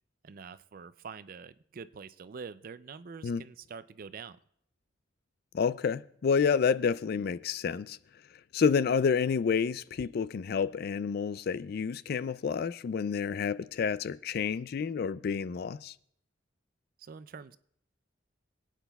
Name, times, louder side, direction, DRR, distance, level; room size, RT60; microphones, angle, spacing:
voice 1, 0.2-4.4 17.0-17.6, right 5 dB, 45° right, 0.4 m, -45 dB
voice 2, 5.5-8.0 8.5-15.9, left 6 dB, 55° left, 0.3 m, -29 dB
25.0 x 9.0 x 2.3 m
head